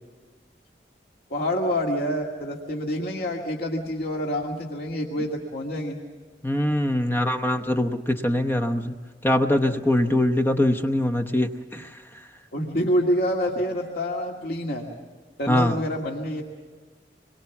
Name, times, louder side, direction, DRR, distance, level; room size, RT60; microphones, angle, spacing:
voice 1, 1.3-6.0 12.5-14.8 15.4-16.4, equal, 60° left, -1 dB, 2.2 m, -27 dB
voice 2, 6.4-8.9 9.2-12.0 15.5-15.8, left 1 dB, 15° left, 6 dB, 0.9 m, -23 dB
27.0 x 22.5 x 7.1 m, 1.5 s
head